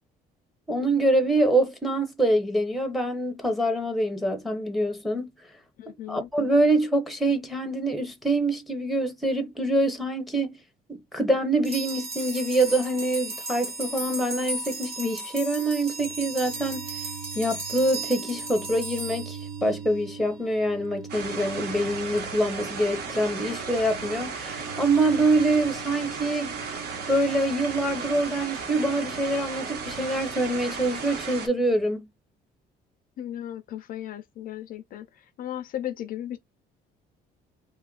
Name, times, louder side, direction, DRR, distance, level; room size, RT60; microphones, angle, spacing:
voice 1, 0.7-5.3 6.1-10.6 10.9-16.9 17.3-26.5 27.1-32.1, right 1 dB, ahead, 0.7 m, -25 dB
voice 2, 5.8-6.3 33.2-36.4, left 11 dB, 55° left, 0.4 m, -36 dB
sound 1, 11.6-20.2, right 3 dB, 35° right, 1.2 m, -35 dB
sound 2, 16.0-31.9, right 6 dB, 85° right, 0.8 m, -44 dB
sound 3, 21.1-31.5, right 5 dB, 65° right, 1.2 m, -35 dB
3.0 x 2.4 x 3.7 m
cardioid pair, 150°, 18 cm